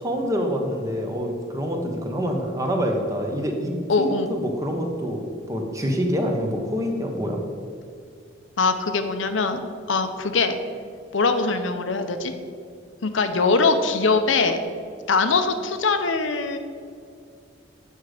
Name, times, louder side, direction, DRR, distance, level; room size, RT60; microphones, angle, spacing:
voice 1, 0.0-7.4, equal, 15° right, 2 dB, 0.9 m, -26 dB
voice 2, 3.9-4.3 8.6-10.6 11.1-12.3 13.0-14.6 15.1-16.6, left 4 dB, 75° left, 8 dB, 0.7 m, -22 dB
8.2 x 6.3 x 4.9 m, 2.3 s
head